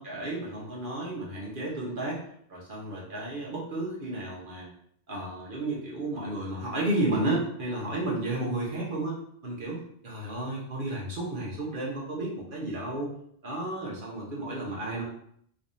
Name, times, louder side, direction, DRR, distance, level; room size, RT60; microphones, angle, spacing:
voice 1, 0.0-2.2 2.5-4.7 5.1-13.1 13.4-15.0, right 2 dB, 45° right, -4 dB, 1.1 m, -32 dB
3.2 x 3.2 x 2.7 m, 0.67 s
omnidirectional pair, 1.2 m